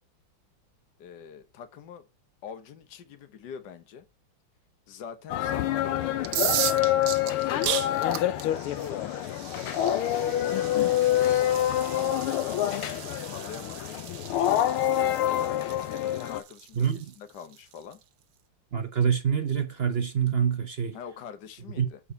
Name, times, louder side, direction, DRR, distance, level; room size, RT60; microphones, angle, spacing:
voice 1, 1.0-2.0 2.4-4.0 4.9-6.2 6.7-9.6 10.4-10.8 11.3-11.5 11.9-14.0 14.4-15.6 15.9-18.0 20.9-22.0, left 7 dB, 55° left, 1.6 m, -44 dB
sound 1, 5.3-16.4, left 12 dB, 90° left, 1.7 m, -26 dB
sound 2, 6.2-17.9, right 12 dB, 90° right, 1.7 m, -36 dB
voice 2, 16.8-17.1 18.7-21.0 21.8-21.9, right 7 dB, 60° right, 0.6 m, -26 dB
7.1 x 4.8 x 5.4 m
omnidirectional pair, 2.3 m